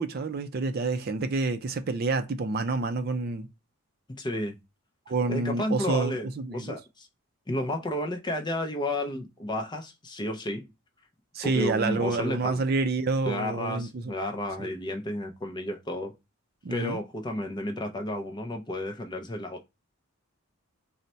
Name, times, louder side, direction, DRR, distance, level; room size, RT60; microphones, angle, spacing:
voice 1, 0.0-3.5 5.1-6.8 11.3-14.1 14.6-14.7 16.6-17.0, right 3 dB, 45° right, 0.4 m, -28 dB
voice 2, 4.1-4.6 5.3-7.1 7.5-10.6 11.4-12.6 13.3-16.1 16.7-19.6, left 1 dB, 20° left, 0.5 m, -32 dB
3.9 x 2.1 x 4.2 m
head